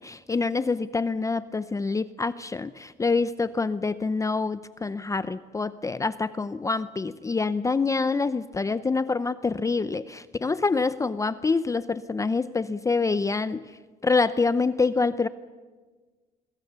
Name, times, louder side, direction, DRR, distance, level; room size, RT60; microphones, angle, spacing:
voice 1, 0.0-13.6 14.0-15.3, left 4 dB, 20° left, 14 dB, 0.6 m, -26 dB
27.0 x 22.5 x 6.8 m, 1.4 s
cardioid pair, 110°, 17 cm